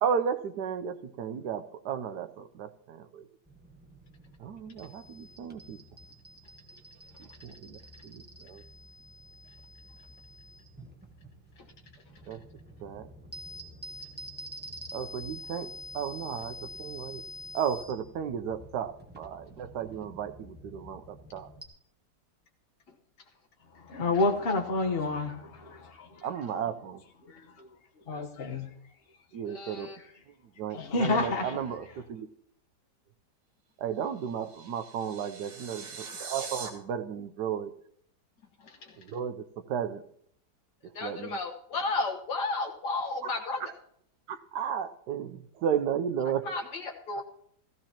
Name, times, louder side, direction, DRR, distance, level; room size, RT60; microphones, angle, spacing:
voice 1, 0.0-3.3 4.4-5.8 7.2-8.6 12.3-12.4 12.8-13.1 14.9-15.7 15.9-17.2 17.5-21.5 26.2-27.0 29.3-29.9 30.6-32.3 33.8-37.7 39.0-40.0 40.8-41.4 43.6-43.7 44.3-46.4 47.2-47.3, right 8 dB, 80° right, 1.3 m, -34 dB
sound 1, 3.5-21.7, equal, 5° right, 0.9 m, -47 dB
voice 2, 23.7-26.3 27.3-27.7 28.1-28.7 30.7-31.6, left 3 dB, 40° left, 1.3 m, -30 dB
voice 3, 29.5-30.0 38.6-39.0 41.0-43.7 46.5-47.2, left 3 dB, 80° left, 2.0 m, -33 dB
sound 2, 34.0-36.7, right 4 dB, 55° right, 1.8 m, -42 dB
15.0 x 15.0 x 2.9 m
omnidirectional pair, 1.8 m